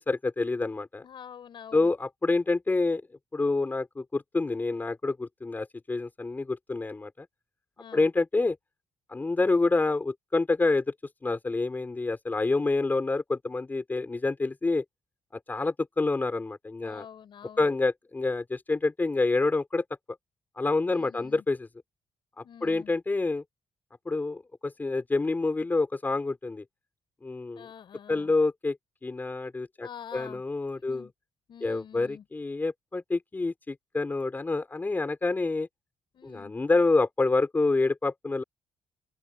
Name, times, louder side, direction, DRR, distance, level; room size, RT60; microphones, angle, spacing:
voice 1, 0.0-1.0 1.7-3.0 3.3-7.3 7.9-8.6 9.1-10.9 11.2-14.8 15.3-17.1 17.6-19.8 20.6-21.7 22.4-23.4 24.1-26.6 27.2-27.7 28.1-28.8 29.0-31.1 31.6-35.7 36.2-38.4, left 3 dB, 20° left, 4.1 m, -27 dB
voice 2, 1.0-1.9 7.8-8.1 16.8-17.6 20.9-21.4 22.4-22.9 27.5-28.3 29.8-30.4 30.9-31.1 31.5-32.2 36.1-36.5, left 8 dB, 55° left, 6.5 m, -46 dB
open air
cardioid pair, 135°, 10 cm